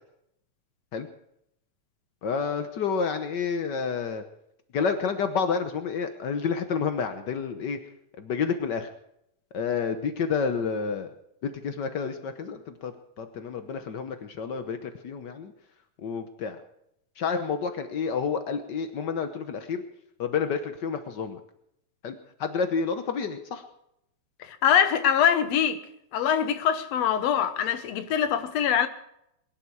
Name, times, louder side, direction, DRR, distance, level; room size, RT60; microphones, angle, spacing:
voice 1, 2.2-4.2 4.7-7.8 8.2-8.9 9.5-11.1 11.4-12.9 13.2-15.5 16.0-16.6 17.2-19.8 20.2-21.4 22.0-22.1 22.4-23.6, left 6 dB, 90° left, 8 dB, 0.9 m, -29 dB
voice 2, 24.4-25.8 26.1-28.9, left 8 dB, 65° left, 10 dB, 2.1 m, -23 dB
22.0 x 11.5 x 4.7 m, 0.78 s
omnidirectional pair, 3.4 m